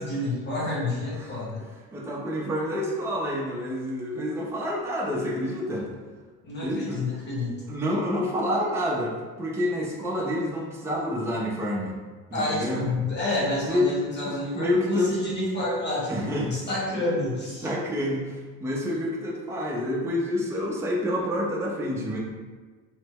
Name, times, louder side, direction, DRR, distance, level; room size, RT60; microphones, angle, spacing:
voice 1, 0.0-1.6 6.4-7.5 12.3-17.7, left 2 dB, 35° left, -7 dB, 1.4 m, -29 dB
voice 2, 1.1-5.9 6.6-7.0 7.7-12.0 12.3-12.8 13.7-14.0 14.2-15.2 16.1-16.7 17.6-22.2, left 1 dB, 10° right, -4 dB, 0.5 m, -28 dB
3.1 x 2.1 x 3.4 m, 1.4 s
cardioid pair, 100°, 30 cm